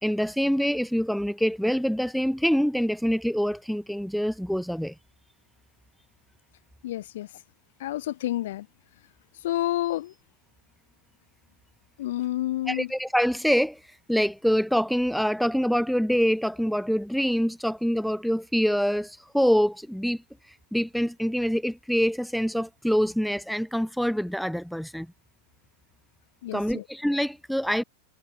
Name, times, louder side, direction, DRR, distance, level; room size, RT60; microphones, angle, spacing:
voice 1, 0.0-4.9 12.7-13.8 14.1-20.2 20.7-25.1 26.5-27.8, equal, ahead, 0.5 m, -25 dB
voice 2, 6.8-7.3 7.8-8.7 9.4-10.1 12.0-12.9 26.4-26.8, left 14 dB, 55° left, 1.7 m, -29 dB
figure-of-eight pair, 90°, 0 cm